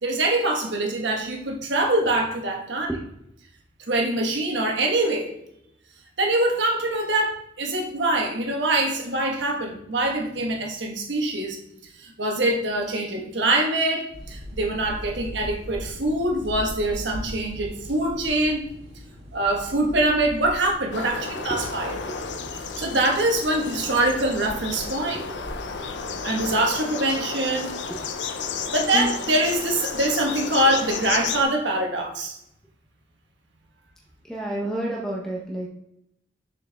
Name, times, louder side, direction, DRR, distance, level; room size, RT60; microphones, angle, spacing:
voice 1, 0.0-2.9 3.9-5.3 6.2-11.6 12.0-18.6 19.3-22.0 22.8-25.2 26.2-27.8 28.7-32.4, right 1 dB, 75° right, 2 dB, 1.3 m, -24 dB
sound 1, 14.1-26.8, equal, 30° right, 1.5 m, -40 dB
sound 2, 20.9-31.4, left 5 dB, 75° left, 0.5 m, -32 dB
voice 2, 25.1-25.4 27.9-28.0 28.9-29.2 34.2-35.7, right 1 dB, 5° left, -3 dB, 0.8 m, -30 dB
6.9 x 4.5 x 3.5 m, 0.79 s
head